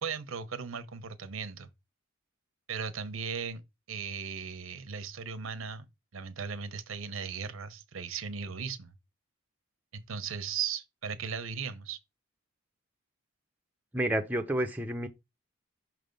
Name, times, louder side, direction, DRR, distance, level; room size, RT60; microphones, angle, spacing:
voice 1, 0.0-1.7 2.7-3.6 3.9-5.9 6.1-8.9 9.9-12.0, right 6 dB, 90° right, 0.8 m, -37 dB
voice 2, 13.9-15.1, right 1 dB, 10° right, 0.5 m, -30 dB
5.9 x 3.4 x 5.2 m
head